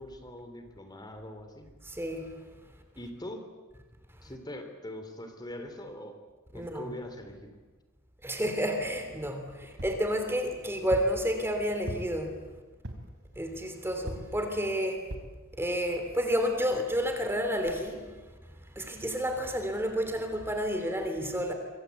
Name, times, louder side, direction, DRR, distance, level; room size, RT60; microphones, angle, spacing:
voice 1, 0.0-1.7 2.9-3.4 4.2-6.2 6.5-7.6, left 1 dB, 20° left, 6 dB, 3.3 m, -42 dB
voice 2, 1.8-2.3 6.5-6.9 8.2-12.4 13.4-15.0 15.6-18.1 18.7-21.5, equal, 10° right, 5 dB, 3.2 m, -30 dB
sound 1, 9.8-10.1 10.9-11.2 11.9-12.3 12.8-13.2 14.1-14.4 15.1-15.4 16.0-16.1 16.3-16.4, equal, 60° right, 4.2 m, -39 dB
25.5 x 25.0 x 8.4 m, 1.3 s
head